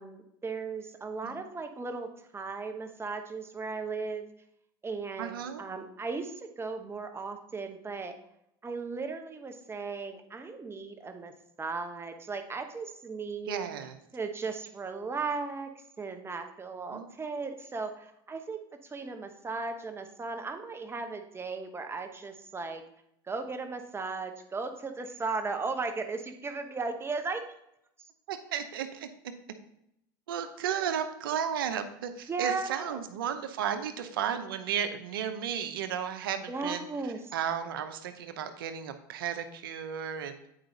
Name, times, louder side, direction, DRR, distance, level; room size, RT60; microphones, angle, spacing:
voice 1, 0.0-4.2 4.8-8.1 8.6-11.3 11.6-13.7 14.1-15.7 16.0-22.8 23.3-27.5 32.3-33.0 36.5-37.2, right 4 dB, 20° right, 6 dB, 1.0 m, -36 dB
voice 2, 5.2-5.6 13.5-14.0 16.9-17.1 28.3-29.1 30.3-36.9 37.3-40.3, right 8 dB, 85° right, 9 dB, 0.8 m, -34 dB
8.9 x 4.8 x 3.9 m, 0.78 s
hypercardioid pair, 90°, 11 cm